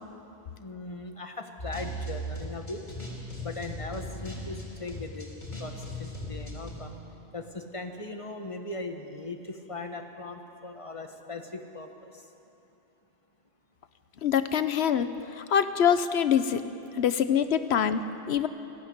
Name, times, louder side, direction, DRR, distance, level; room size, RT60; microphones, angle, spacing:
voice 1, 0.6-2.8 3.4-5.3 5.6-6.9 7.3-12.3, left 2 dB, 30° left, 5 dB, 1.4 m, -39 dB
sound 1, 1.6-6.7, equal, 45° left, 4.1 m, -38 dB
voice 2, 14.2-16.6 17.0-18.5, left 8 dB, 80° left, 12 dB, 1.1 m, -25 dB
19.0 x 14.5 x 9.6 m, 2.9 s
omnidirectional pair, 1.1 m